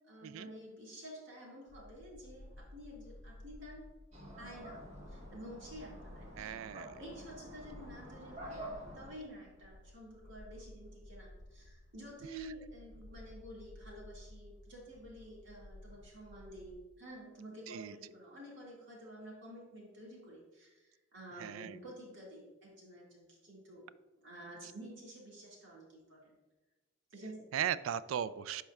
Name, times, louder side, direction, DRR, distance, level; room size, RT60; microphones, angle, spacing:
voice 1, 0.1-3.9 4.4-4.8 5.1-6.4 7.0-8.6 8.9-23.8 24.2-26.3 27.1-27.5, right 1 dB, 65° right, -4 dB, 2.0 m, -50 dB
sound 1, 1.7-16.7, left 1 dB, 45° left, 1.1 m, -55 dB
sound 2, 4.1-9.1, right 1 dB, 35° right, 1.2 m, -49 dB
voice 2, 6.4-7.0 17.7-17.9 21.4-21.8 27.5-28.6, right 9 dB, 80° right, 17 dB, 0.3 m, -37 dB
11.5 x 4.3 x 2.4 m, 1.2 s
head